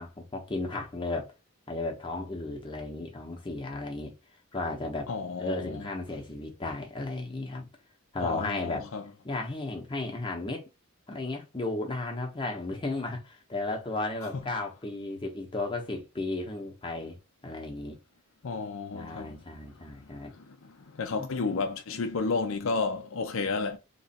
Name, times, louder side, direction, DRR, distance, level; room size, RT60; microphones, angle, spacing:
voice 1, 0.0-1.3 1.7-4.1 4.5-5.1 5.4-7.7 8.1-8.9 9.2-10.7 11.1-17.2 17.4-18.0 18.9-20.3 21.1-21.3, left 2 dB, 20° left, 0.8 m, -34 dB
voice 2, 5.1-5.8 8.2-9.0 18.4-19.4 20.4-20.6 20.9-23.8, left 4 dB, 65° left, 0.5 m, -31 dB
3.0 x 2.4 x 4.1 m
head